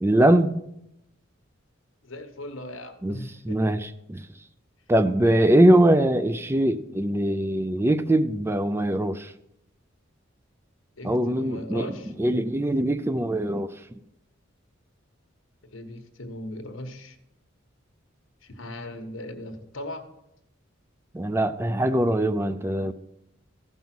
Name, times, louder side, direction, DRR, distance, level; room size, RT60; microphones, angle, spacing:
voice 1, 0.0-0.5 3.0-3.2 3.4-4.2 4.9-9.3 11.0-11.9 12.2-13.7 21.1-22.9, right 1 dB, 10° right, 0.4 m, -22 dB
voice 2, 2.0-3.7 11.0-12.1 15.6-17.2 18.4-20.0, left 1 dB, 85° left, 1.3 m, -38 dB
14.5 x 5.5 x 6.0 m
head